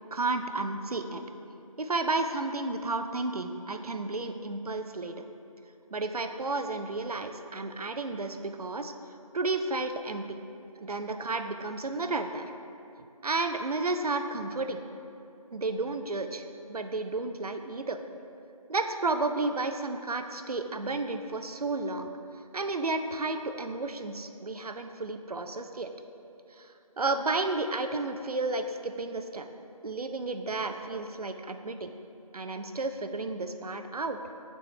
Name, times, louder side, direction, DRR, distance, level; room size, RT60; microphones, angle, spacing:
voice 1, 0.1-1.2 1.8-5.3 5.9-8.9 9.3-10.4 10.8-12.5 13.2-14.8 15.5-18.0 18.7-22.1 22.5-25.9 26.6-26.7 27.0-29.5 29.8-31.9 32.3-34.2, right 3 dB, 80° right, 7 dB, 0.5 m, -32 dB
7.1 x 4.2 x 3.2 m, 2.7 s
figure-of-eight pair, 165°, 19 cm